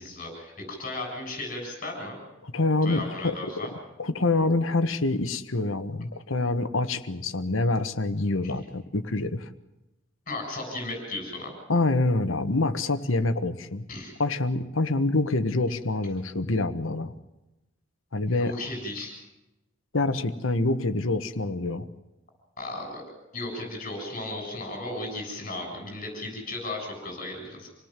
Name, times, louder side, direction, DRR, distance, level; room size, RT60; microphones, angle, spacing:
voice 1, 0.0-2.2 2.8-3.7 10.3-11.5 13.9-14.1 18.3-19.1 22.6-23.0 23.3-27.7, left 2 dB, 40° left, 1 dB, 7.4 m, -35 dB
voice 2, 2.4-3.4 4.0-9.5 11.7-13.8 14.2-17.1 18.1-18.5 19.9-21.9, left 2 dB, 75° left, 10 dB, 1.4 m, -26 dB
27.0 x 18.5 x 7.5 m, 0.99 s
head